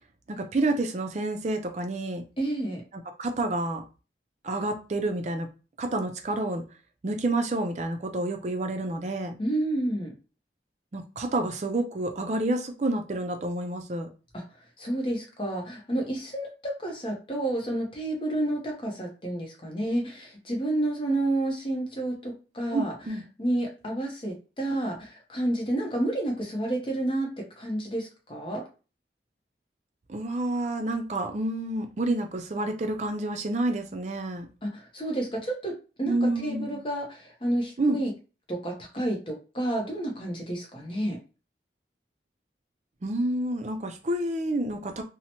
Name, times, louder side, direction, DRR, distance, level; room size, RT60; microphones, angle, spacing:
voice 1, 0.3-2.2 3.2-3.8 4.4-5.5 5.8-6.6 7.0-9.4 10.9-14.1 22.7-23.2 30.1-34.5 36.1-36.8 37.8-38.0 43.0-45.0, right 2 dB, 40° right, 0.4 m, -29 dB
voice 2, 2.4-2.8 9.4-10.1 14.3-14.4 14.8-22.9 23.4-28.6 34.6-38.1 38.5-41.2, right 1 dB, 30° left, 0.7 m, -30 dB
2.9 x 2.0 x 2.8 m
head